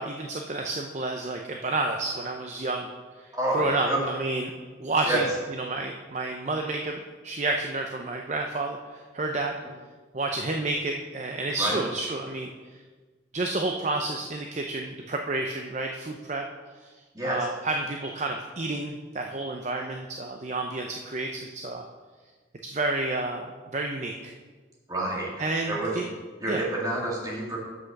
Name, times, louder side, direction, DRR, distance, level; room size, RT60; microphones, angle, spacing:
voice 1, 0.0-2.9 3.2-4.5 4.8-9.6 10.1-12.5 13.3-16.4 17.2-21.8 22.6-24.3 25.4-26.0 26.5-26.6, right 2 dB, 35° right, 3 dB, 0.5 m, -30 dB
voice 2, 3.3-4.0 5.1-5.2 11.6-11.8 17.1-17.4 24.9-26.1 26.4-27.6, right 1 dB, 20° right, -4 dB, 2.1 m, -28 dB
8.0 x 6.1 x 6.4 m, 1.4 s
head